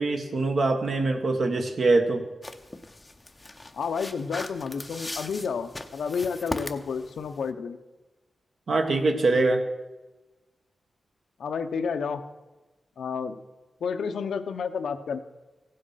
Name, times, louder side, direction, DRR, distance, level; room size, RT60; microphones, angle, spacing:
voice 1, 0.0-2.3 8.7-9.6, right 3 dB, 50° right, 5 dB, 1.4 m, -23 dB
sound 1, 2.4-7.5, left 2 dB, 15° left, 0.7 m, -39 dB
voice 2, 3.7-7.8 11.4-12.2 13.0-13.4 13.8-15.2, left 6 dB, 85° left, 8 dB, 0.8 m, -30 dB
16.0 x 7.7 x 5.7 m, 1.1 s
wide cardioid pair, 150°, 0 cm